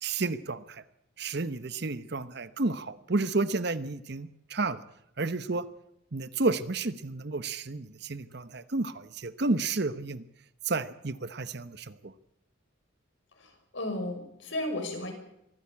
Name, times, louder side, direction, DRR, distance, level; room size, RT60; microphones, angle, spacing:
voice 1, 0.0-0.8 1.2-4.8 5.2-5.7 6.1-10.2 10.7-12.1, right 3 dB, 55° right, 14 dB, 1.0 m, -31 dB
voice 2, 13.4-15.1, left 1 dB, 65° left, 4 dB, 5.9 m, -34 dB
23.5 x 15.0 x 8.6 m, 0.79 s
head